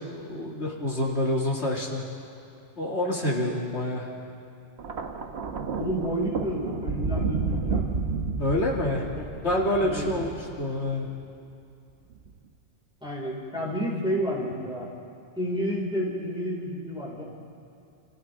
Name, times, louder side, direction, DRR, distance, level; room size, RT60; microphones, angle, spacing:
voice 1, 0.1-2.0 2.8-4.1 8.4-9.1 9.4-11.1, left 1 dB, 70° left, -3 dB, 2.8 m, -27 dB
Thunder, 4.8-11.1 12.1-12.4, right 4 dB, 65° right, 1.4 m, -31 dB
voice 2, 5.7-7.9 9.8-10.1 13.0-14.9 15.3-17.2, equal, 5° right, -5 dB, 5.1 m, -30 dB
30.0 x 29.0 x 3.7 m, 2.5 s
omnidirectional pair, 1.2 m